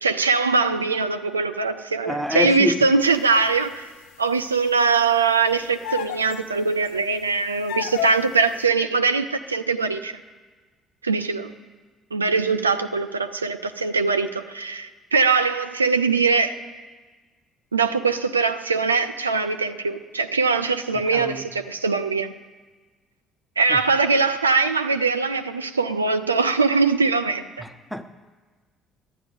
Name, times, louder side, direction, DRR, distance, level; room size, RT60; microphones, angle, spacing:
voice 1, 0.0-3.9 4.2-10.1 11.0-11.5 12.1-16.6 17.7-22.3 23.6-27.5, right 4 dB, 85° right, 0.4 m, -22 dB
voice 2, 2.1-2.8 21.1-21.5 23.7-23.8 27.6-28.0, left 1 dB, ahead, 1.1 m, -27 dB
sound 1, 3.4-3.8 5.8-6.4 6.9-7.0 7.7-8.4, left 12 dB, 65° left, 0.4 m, -30 dB
11.5 x 10.0 x 9.7 m
figure-of-eight pair, 50°, 0 cm